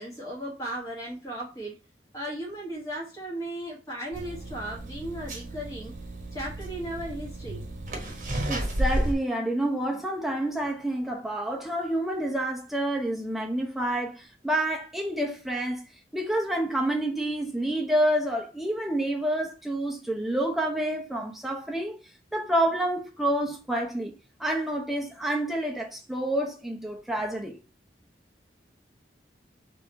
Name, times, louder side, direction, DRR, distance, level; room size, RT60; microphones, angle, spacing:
voice 1, 0.0-1.8 2.1-5.9 6.3-7.7, right 1 dB, 20° left, 1.3 m, -36 dB
sound 1, 4.1-9.1, right 1 dB, 45° right, 1.1 m, -32 dB
voice 2, 8.5-15.9 16.1-22.0 22.3-24.1 24.4-27.6, right 1 dB, ahead, 0.8 m, -28 dB
3.7 x 3.3 x 4.1 m
head